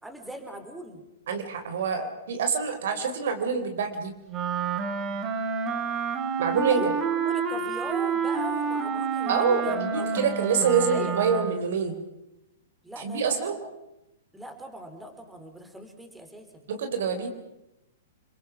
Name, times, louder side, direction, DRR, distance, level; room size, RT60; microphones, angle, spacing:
voice 1, 0.0-1.0 6.7-10.3 10.8-11.5 12.8-13.7 14.3-16.6, right 1 dB, 5° right, 5 dB, 3.8 m, -40 dB
voice 2, 1.3-4.1 6.4-6.8 9.3-12.0 13.0-13.6 16.7-17.3, right 6 dB, 65° right, 7 dB, 3.8 m, -26 dB
Wind instrument woodwind instrument, 4.3-11.7, right 6 dB, 30° right, 2.7 m, -29 dB
30.0 x 22.5 x 6.0 m, 0.91 s
hypercardioid pair, 115°, 0 cm